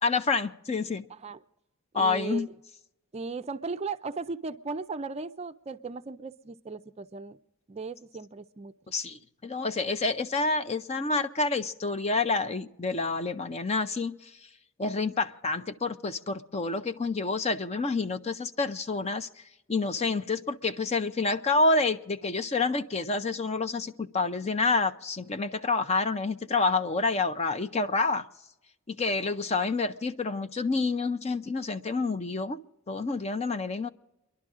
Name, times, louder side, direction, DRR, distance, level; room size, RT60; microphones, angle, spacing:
voice 1, 0.0-1.0 1.9-2.5 8.9-14.2 14.8-19.3 19.7-28.3 28.9-32.6 32.9-33.9, left 3 dB, 30° left, 0.6 m, -28 dB
voice 2, 1.9-2.5 3.1-7.4 7.7-8.7, right 4 dB, 30° right, 0.4 m, -37 dB
30.0 x 11.5 x 3.7 m
head